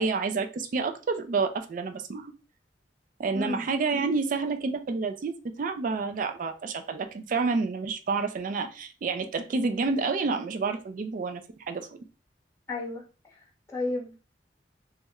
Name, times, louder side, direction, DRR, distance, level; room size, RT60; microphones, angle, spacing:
voice 1, 0.0-2.3 3.2-5.3 5.6-11.4 11.7-12.0, right 4 dB, 50° right, 7 dB, 0.4 m, -29 dB
voice 2, 3.3-3.6 12.7-14.2, left 2 dB, 15° left, -2 dB, 0.8 m, -33 dB
3.0 x 2.1 x 3.5 m, 0.34 s
head